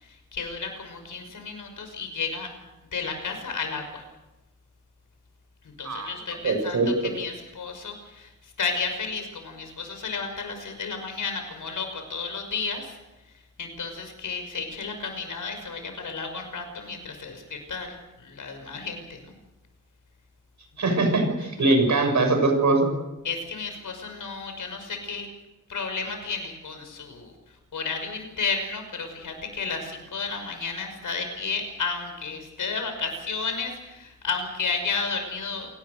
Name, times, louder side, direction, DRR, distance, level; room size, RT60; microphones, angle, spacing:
voice 1, 0.0-2.5 2.9-4.0 5.8-13.0 13.6-19.3 23.2-25.3 25.7-27.3 27.7-35.7, left 4 dB, 75° left, 6 dB, 5.8 m, -32 dB
voice 2, 6.4-6.9 20.8-22.9, right 2 dB, 65° right, 5 dB, 6.6 m, -22 dB
27.5 x 19.0 x 6.7 m, 1.0 s
wide cardioid pair, 165°, 32 cm